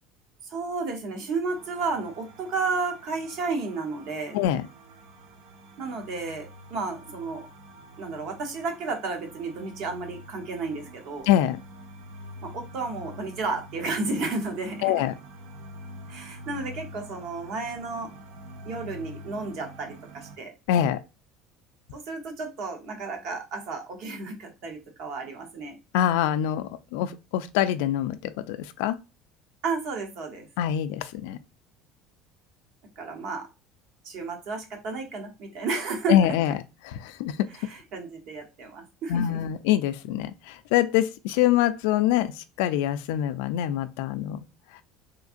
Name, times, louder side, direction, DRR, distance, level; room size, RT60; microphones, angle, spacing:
voice 1, 0.4-4.4 5.8-7.5 8.0-11.3 12.4-14.9 16.1-18.1 18.6-20.5 21.9-25.8 29.6-30.5 33.0-33.5 34.0-36.3 37.5-39.4, right 4 dB, 45° right, 0.9 m, -32 dB
sound 1, 1.5-20.4, equal, 80° right, 0.7 m, -46 dB
voice 2, 4.3-4.7 11.3-11.6 14.8-15.1 20.7-21.0 25.9-29.0 30.6-31.4 36.1-36.5 36.8-37.5 39.1-44.4, left 11 dB, 80° left, 0.3 m, -24 dB
3.5 x 3.1 x 2.5 m
cardioid pair, 180°, 0 cm